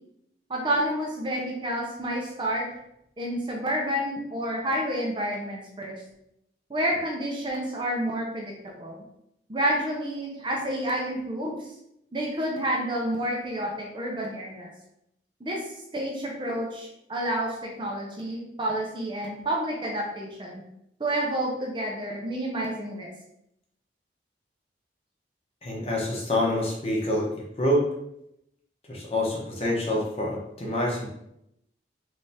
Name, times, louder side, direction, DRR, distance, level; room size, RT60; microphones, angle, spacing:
voice 1, 0.5-2.7 3.2-6.0 6.7-9.0 9.5-11.7 12.1-14.7 15.4-15.6 15.9-20.6 21.0-23.1, right 1 dB, 25° right, -1 dB, 0.5 m, -29 dB
voice 2, 25.6-27.3 27.6-27.8 28.9-31.1, left 1 dB, 35° left, -3 dB, 0.9 m, -26 dB
3.3 x 3.2 x 2.7 m, 0.80 s
head